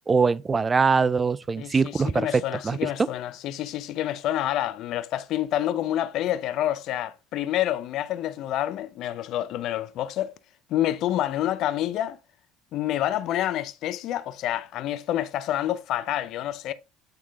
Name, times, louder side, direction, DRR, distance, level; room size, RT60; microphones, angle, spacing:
voice 1, 0.1-3.1, right 5 dB, 25° right, 0.4 m, -23 dB
voice 2, 1.6-10.4 10.7-12.2 12.7-16.7, left 12 dB, 60° left, 0.7 m, -28 dB
9.0 x 3.7 x 3.6 m
supercardioid pair, 95°, 0 cm